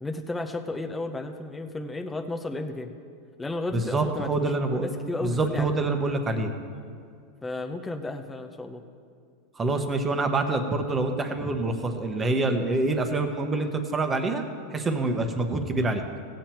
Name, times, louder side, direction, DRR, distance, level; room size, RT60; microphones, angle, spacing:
voice 1, 0.0-2.9 3.4-5.7 7.4-8.8, left 2 dB, 10° left, 4 dB, 0.7 m, -33 dB
voice 2, 3.7-4.9 5.2-6.5 9.6-14.4 14.7-16.0, right 2 dB, 20° right, 5 dB, 1.1 m, -26 dB
17.0 x 7.4 x 4.5 m, 2.3 s
supercardioid pair, 125°, 0 cm